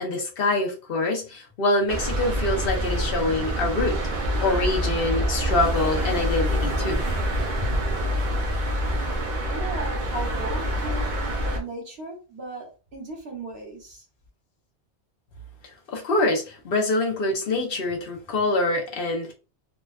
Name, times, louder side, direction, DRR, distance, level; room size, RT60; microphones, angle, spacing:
voice 1, 0.0-4.0 4.4-7.0 15.9-19.3, left 2 dB, 60° left, 0.9 m, -25 dB
sound 1, 1.9-11.6, equal, 50° right, 0.7 m, -26 dB
voice 2, 9.5-14.0, right 2 dB, 70° right, 1.2 m, -36 dB
3.4 x 2.2 x 2.3 m
omnidirectional pair, 1.1 m